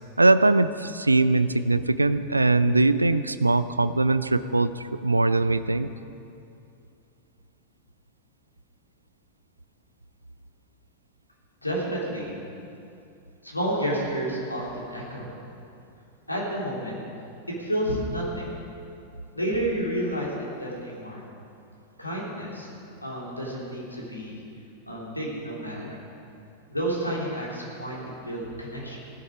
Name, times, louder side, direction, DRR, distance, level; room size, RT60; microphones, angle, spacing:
voice 1, 0.2-4.7 5.0-5.9, right 2 dB, 80° right, 14 dB, 0.4 m, -21 dB
voice 2, 11.6-12.3 13.4-15.3 16.3-17.0 17.5-18.5 19.3-20.3 20.6-21.2 22.0-22.7 23.0-24.4 24.9-26.0 26.7-29.0, right 1 dB, 85° left, -4 dB, 3.5 m, -30 dB
17.0 x 12.0 x 5.0 m, 2.6 s
figure-of-eight pair, 90°, 0 cm